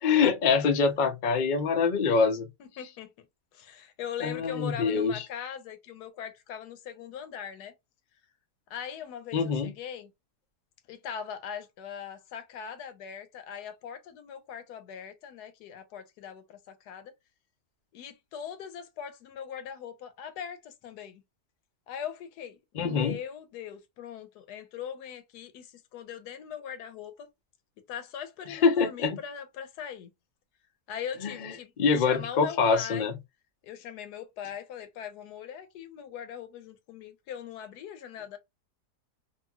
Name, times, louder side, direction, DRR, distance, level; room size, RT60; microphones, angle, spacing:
voice 1, 0.0-2.5 4.2-5.2 9.3-9.7 22.7-23.2 28.5-29.2 31.2-33.1, left 5 dB, 70° left, 0.4 m, -25 dB
voice 2, 2.6-3.1 3.5-7.7 8.7-10.1 10.9-17.1 17.9-21.2 21.9-27.3 27.9-30.1 30.9-33.1 33.6-38.4, left 8 dB, 85° left, 1.2 m, -40 dB
3.0 x 2.6 x 2.2 m
omnidirectional pair, 1.7 m